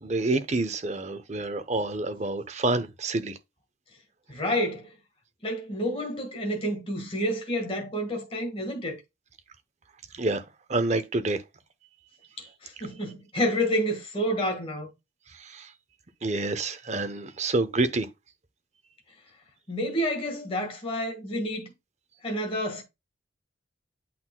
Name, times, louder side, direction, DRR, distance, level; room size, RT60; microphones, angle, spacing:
voice 1, 0.0-3.4 10.2-10.4 10.7-11.4 15.5-15.7 16.2-18.1, right 2 dB, 35° right, 0.8 m, -27 dB
voice 2, 4.3-4.9 5.4-9.0 12.4-14.9 19.7-21.7 22.2-22.8, equal, 30° left, 1.6 m, -29 dB
8.6 x 5.8 x 2.2 m
head